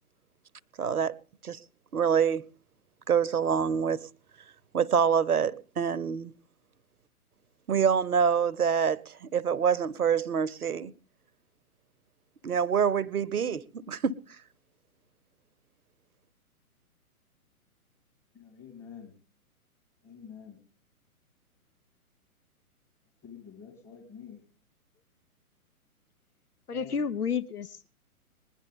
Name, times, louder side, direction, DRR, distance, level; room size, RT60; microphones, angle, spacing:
voice 1, 0.8-1.1 1.4-1.6 1.9-2.4 3.1-4.1 4.7-6.3 7.7-10.9 12.4-14.2, right 7 dB, 75° right, 0.8 m, -26 dB
voice 2, 18.3-19.2 20.0-20.6 23.2-24.4 26.7-27.1, left 7 dB, 20° left, 2.8 m, -48 dB
voice 3, 26.7-27.9, left 6 dB, 90° left, 0.7 m, -31 dB
20.5 x 11.0 x 3.6 m
figure-of-eight pair, 125°, 44 cm